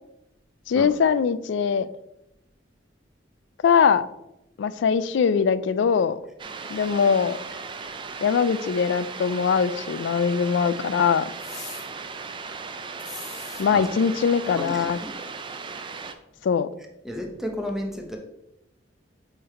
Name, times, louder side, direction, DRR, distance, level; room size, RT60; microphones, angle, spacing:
voice 1, 0.7-1.9 3.6-4.1 4.6-6.2 6.7-7.4 8.2-11.3 13.6-15.0 16.4-16.7, left 6 dB, 70° left, 15 dB, 0.3 m, -22 dB
sound 1, 6.4-16.1, right 4 dB, 25° right, 0.4 m, -37 dB
sound 2, 11.4-11.8 13.0-13.6, left 4 dB, 40° left, 1.5 m, -40 dB
voice 2, 14.5-15.1 17.0-18.2, equal, ahead, 2 dB, 0.7 m, -32 dB
6.9 x 3.3 x 4.2 m, 0.87 s
head